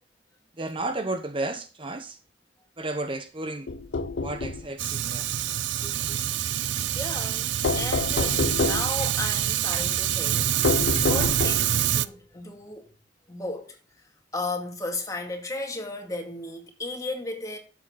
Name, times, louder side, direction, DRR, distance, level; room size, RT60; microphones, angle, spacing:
voice 1, 0.5-2.2 2.8-3.7 4.2-5.5 5.8-6.2, right 2 dB, 30° right, 0.8 m, -33 dB
sound 1, 3.7-4.7 7.6-9.0 10.6-11.8, left 3 dB, 75° left, 0.6 m, -27 dB
Fire, 4.8-12.1, right 11 dB, 80° right, 0.5 m, -26 dB
voice 2, 6.9-12.9 13.3-13.8 14.3-17.6, left 2 dB, 20° left, 2.2 m, -35 dB
11.5 x 7.7 x 3.9 m
head